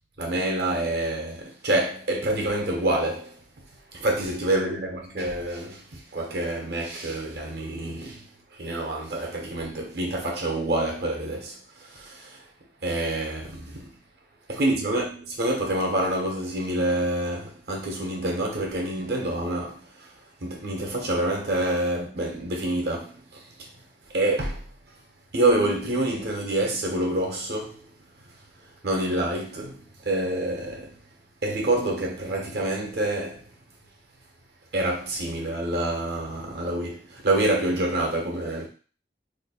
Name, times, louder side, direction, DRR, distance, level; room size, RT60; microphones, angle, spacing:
voice 1, 0.2-3.4 3.9-12.4 12.8-13.9 14.5-20.1 20.4-23.7 24.1-24.6 25.3-27.9 28.8-31.0 31.4-33.4 34.7-38.7, right 1 dB, 60° right, 1.0 m, -27 dB
2.9 x 2.4 x 4.2 m
head